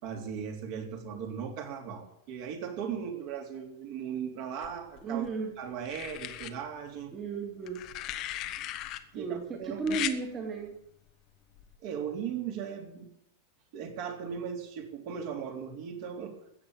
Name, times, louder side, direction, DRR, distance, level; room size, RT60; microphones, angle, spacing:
voice 1, 0.0-5.3 5.6-7.2 9.1-10.0 11.8-13.1 13.7-16.4, right 7 dB, 45° right, 2 dB, 3.2 m, -38 dB
sound 1, 4.6-5.3 5.9-6.5 7.7-9.0 9.9-10.2 11.6-11.8, left 13 dB, 40° left, 1.1 m, -37 dB
voice 2, 5.0-5.5 7.1-7.9 9.2-10.7, right 4 dB, 25° right, 1 dB, 2.5 m, -34 dB
14.5 x 9.0 x 8.9 m, 0.77 s
figure-of-eight pair, 90°, 0 cm